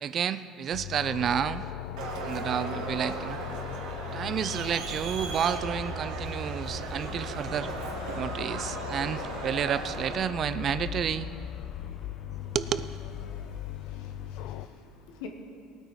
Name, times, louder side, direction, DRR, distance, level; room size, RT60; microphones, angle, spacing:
voice 1, 0.0-1.7 2.2-3.4 4.1-7.7 8.1-11.3 12.5-12.9, right 8 dB, 40° right, 13 dB, 0.5 m, -30 dB
sound 1, 0.7-14.7, left 13 dB, 70° left, 0.4 m, -40 dB
sound 2, 1.8-14.7, left 5 dB, 40° left, 1.1 m, -46 dB
Crowd, 2.0-10.2, right 4 dB, 75° right, 1.9 m, -37 dB
voice 2, 13.8-15.3, left 7 dB, 85° left, 4 dB, 1.5 m, -47 dB
18.5 x 9.0 x 4.8 m, 2.4 s
cardioid pair, 120°, 0 cm